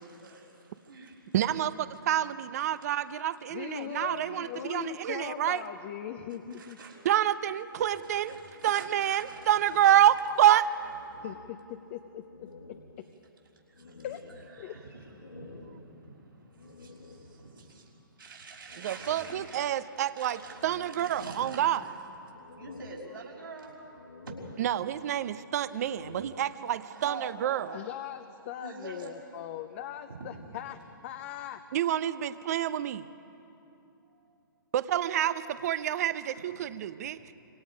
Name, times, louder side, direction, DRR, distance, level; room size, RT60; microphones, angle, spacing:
voice 1, 0.0-1.4 4.0-4.6 6.5-7.1 7.9-9.5 9.8-10.1 13.7-14.1 14.5-19.8 20.1-21.9 22.6-24.3 26.3-26.5 26.7-27.9 28.4-29.1 30.1-30.2 33.2-33.3 34.1-34.4 37.2-37.3, right 3 dB, 80° right, -3 dB, 6.0 m, -47 dB
voice 2, 1.3-5.6 7.0-8.4 8.6-10.7 18.8-21.8 24.6-27.8 31.7-33.1 34.7-37.2, right 11 dB, 45° right, 14 dB, 0.8 m, -27 dB
voice 3, 3.5-6.8 11.2-13.0 14.0-14.2 14.6-14.8 27.7-31.6, left 11 dB, 35° left, 7 dB, 0.9 m, -40 dB
sound 1, 7.7-10.5 10.8-11.9 12.3-17.7 18.7-20.0 20.4-21.7 22.1-23.6 23.9-25.2 25.7-27.0, left 3 dB, 90° left, 5.4 m, -52 dB
26.5 x 25.0 x 5.2 m, 2.8 s
figure-of-eight pair, 130°, 12 cm